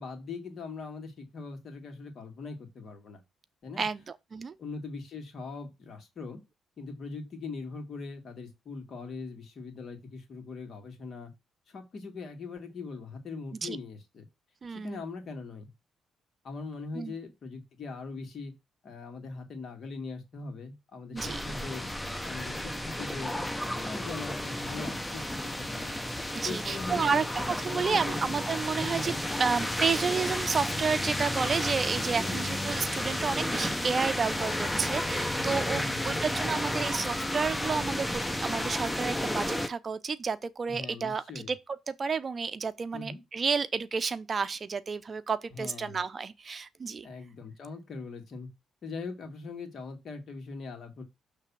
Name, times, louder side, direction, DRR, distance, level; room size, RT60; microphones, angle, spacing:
voice 1, 0.0-3.2 3.6-3.9 4.6-6.4 6.8-11.3 11.7-14.3 14.7-15.7 16.4-18.5 18.8-21.9 22.2-23.4 23.7-25.9 26.4-27.2 27.7-28.2 28.7-29.5 32.2-32.5 35.3-37.0 40.7-41.5 42.9-43.2 45.5-46.0 47.0-48.5 48.8-51.0, left 4 dB, 55° left, 2.1 m, -41 dB
voice 2, 3.8-4.5 13.6-13.8 14.6-15.0 16.9-17.1 21.1-21.4 26.4-27.2 27.6-29.1 29.4-41.6 41.9-47.1, right 5 dB, 40° right, 0.5 m, -31 dB
sound 1, 21.2-39.7, left 1 dB, 5° left, 0.8 m, -32 dB
sound 2, 31.6-34.8 35.1-35.2 35.6-35.7, right 1 dB, 10° right, 3.5 m, -52 dB
6.7 x 3.3 x 6.0 m
cardioid pair, 90°, 0 cm